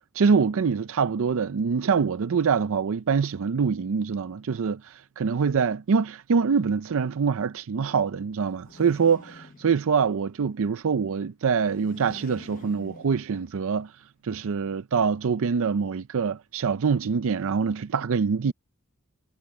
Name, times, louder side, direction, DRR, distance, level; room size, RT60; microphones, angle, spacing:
voice 1, 0.1-13.9 14.2-18.5, right 5 dB, 65° right, 0.5 m, -25 dB
sound 1, 8.4-10.2 11.5-13.7, left 2 dB, 40° left, 1.0 m, -48 dB
head